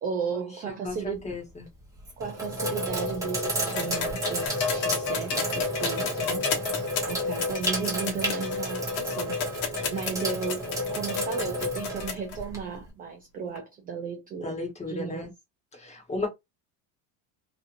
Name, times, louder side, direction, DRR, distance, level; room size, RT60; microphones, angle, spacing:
voice 1, 0.0-1.3 2.2-6.4 6.7-9.4 9.9-14.6 14.9-15.3, right 6 dB, 25° right, 0.3 m, -35 dB
voice 2, 0.8-1.7 9.8-9.9 14.4-15.3 15.8-16.3, left 3 dB, 15° left, 1.1 m, -34 dB
Sink (filling or washing), 0.9-1.3 2.0-12.9, equal, 10° right, 0.8 m, -31 dB
sound 1, 3.7-12.4 13.6-13.7, left 6 dB, 65° left, 1.1 m, -32 dB
2.9 x 2.5 x 2.5 m
cardioid pair, 155°, 40 cm